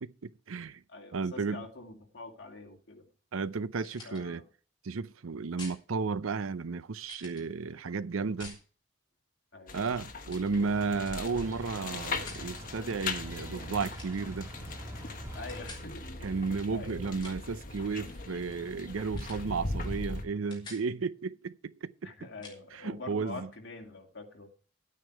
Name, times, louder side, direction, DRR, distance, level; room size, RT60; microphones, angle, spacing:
voice 1, 0.0-0.8 1.1-1.7 3.3-4.4 4.8-8.6 9.7-14.5 16.2-22.1 22.7-23.5, right 4 dB, 85° right, 0.6 m, -33 dB
voice 2, 0.9-3.0 4.0-4.4 9.5-9.8 15.3-16.1 16.7-17.0 22.0-24.5, left 3 dB, 55° left, 2.3 m, -45 dB
sound 1, 3.8-4.2 5.6-5.8 7.0-7.4 8.4-8.6 9.7-10.0 10.3-10.5 12.0-12.4 13.8-14.2 15.5-15.9 17.0-17.5 19.1-19.5 19.8-20.0 20.2-20.9 22.4-22.6, left 3 dB, 25° left, 3.7 m, -48 dB
sound 2, 9.7-20.2, left 3 dB, 40° left, 1.4 m, -39 dB
sound 3, 10.6-15.6, equal, 15° right, 1.6 m, -46 dB
11.0 x 9.2 x 4.6 m
head